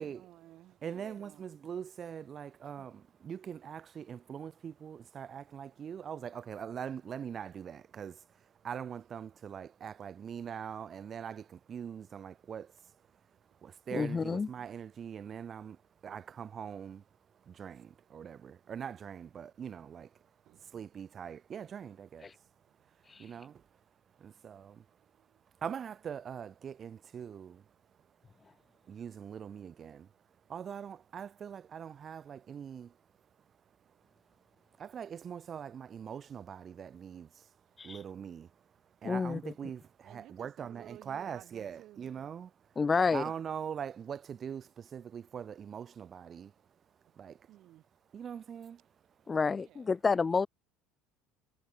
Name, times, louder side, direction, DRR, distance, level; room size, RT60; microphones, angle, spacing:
voice 1, 0.0-1.5 2.6-2.9 13.5-13.6 20.4-21.0 22.8-23.8 25.0-25.4 39.1-39.6 40.0-42.1 47.1-47.2 47.5-47.9 49.6-50.0, right 14 dB, 55° right, 3.9 m, -57 dB
voice 2, 0.8-12.8 13.6-17.0 17.4-20.2 20.6-22.3 23.2-23.6 24.2-24.8 25.6-27.6 28.9-30.1 30.5-33.0 34.8-37.5 37.8-38.5 39.0-42.5 43.1-46.5 47.2-47.5 48.1-48.8, right 8 dB, 35° right, 1.2 m, -42 dB
voice 3, 13.9-14.5 22.2-22.3 23.1-23.2 37.8-38.0 39.0-39.5 42.8-43.2 49.3-50.5, left 4 dB, 20° left, 1.1 m, -29 dB
supercardioid pair, 105°, 0 cm